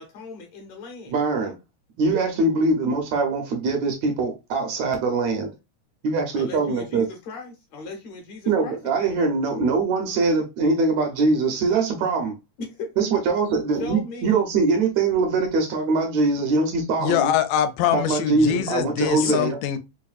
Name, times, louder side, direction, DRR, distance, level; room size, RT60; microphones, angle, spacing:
voice 1, 0.0-1.2 6.3-9.2 12.6-12.9 13.8-14.5 19.2-19.5, left 3 dB, 70° left, 1.8 m, -37 dB
voice 2, 1.1-1.5 2.0-5.5 6.0-7.0 8.5-12.3 13.0-17.3 17.9-19.6, right 3 dB, 70° right, 1.8 m, -22 dB
voice 3, 17.0-19.8, left 11 dB, 85° left, 2.1 m, -23 dB
4.9 x 2.6 x 2.4 m
omnidirectional pair, 3.6 m